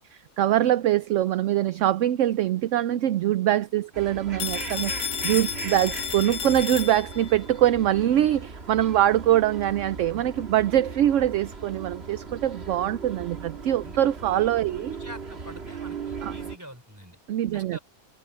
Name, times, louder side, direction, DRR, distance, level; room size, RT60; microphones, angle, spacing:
voice 1, 0.1-4.9 5.2-15.0 16.2-16.3 17.3-17.8, right 12 dB, 65° right, 0.8 m, -23 dB
sound 1, 3.9-16.6, right 5 dB, 45° right, 2.0 m, -38 dB
Telephone, 4.4-7.4, left 8 dB, 70° left, 1.4 m, -32 dB
voice 2, 14.2-17.2 17.5-17.8, equal, 10° right, 3.9 m, -46 dB
omnidirectional pair, 1.6 m